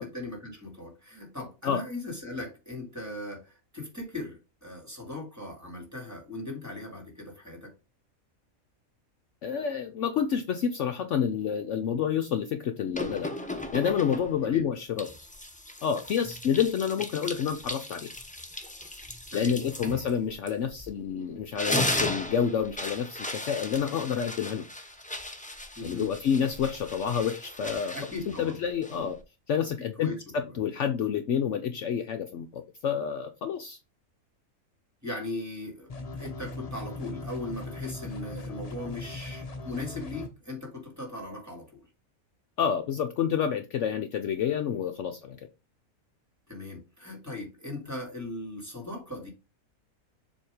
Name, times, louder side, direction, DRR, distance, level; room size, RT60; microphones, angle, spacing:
voice 1, 0.0-7.7 14.4-14.7 19.3-20.0 25.8-26.1 27.9-28.6 30.0-30.5 35.0-41.9 46.5-49.3, left 2 dB, 10° right, 2.1 m, -39 dB
voice 2, 9.4-13.3 13.7-15.1 15.8-18.1 19.3-24.6 25.8-27.9 28.4-29.2 29.5-33.8 42.6-45.4, left 8 dB, 65° left, 0.9 m, -29 dB
sound 1, 12.9-14.5 15.0-21.0 21.4-29.2, left 1 dB, 10° left, 0.4 m, -36 dB
sound 2, 35.9-40.3, left 2 dB, 35° left, 0.7 m, -39 dB
7.2 x 2.9 x 4.8 m
omnidirectional pair, 1.5 m